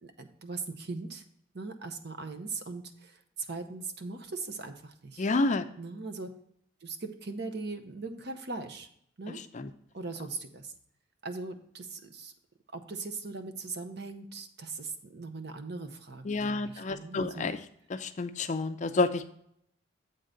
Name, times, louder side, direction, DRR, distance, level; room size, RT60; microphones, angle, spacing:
voice 1, 0.0-1.2 1.5-5.3 5.8-6.3 6.8-8.9 9.2-9.4 9.9-10.7 11.2-12.3 12.7-17.5, right 3 dB, 55° right, 8 dB, 0.8 m, -40 dB
voice 2, 5.2-5.6 9.5-9.7 16.3-17.6 17.9-19.3, left 3 dB, 35° left, 10 dB, 0.4 m, -29 dB
7.8 x 3.8 x 6.5 m, 0.70 s
head